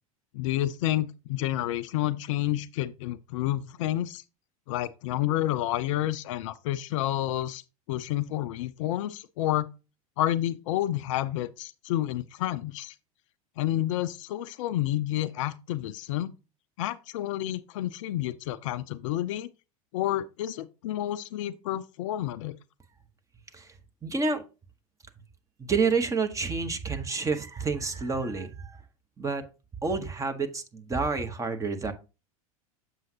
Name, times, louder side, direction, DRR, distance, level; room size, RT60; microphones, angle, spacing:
voice 1, 0.3-4.2 4.7-7.6 7.9-9.7 10.2-12.9 13.6-16.3 16.8-19.5 19.9-22.5, left 13 dB, 55° left, 0.5 m, -29 dB
voice 2, 24.0-24.4 25.6-28.8 29.2-29.4 29.8-31.9, right 4 dB, 15° right, 1.1 m, -29 dB
7.5 x 6.2 x 2.8 m
figure-of-eight pair, 85°, 19 cm